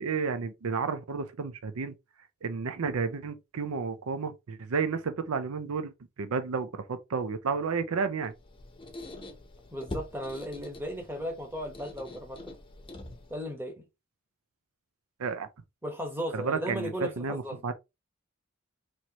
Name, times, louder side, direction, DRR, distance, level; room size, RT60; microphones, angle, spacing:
voice 1, 0.0-1.9 2.4-5.9 6.2-8.3 15.2-15.5 16.3-17.7, right 5 dB, 85° right, 0.5 m, -31 dB
Squeak, 8.2-13.5, left 2 dB, 25° left, 0.7 m, -44 dB
voice 2, 9.7-12.4 13.3-13.8 15.8-17.6, equal, 10° right, 1.1 m, -36 dB
4.4 x 3.0 x 2.9 m
head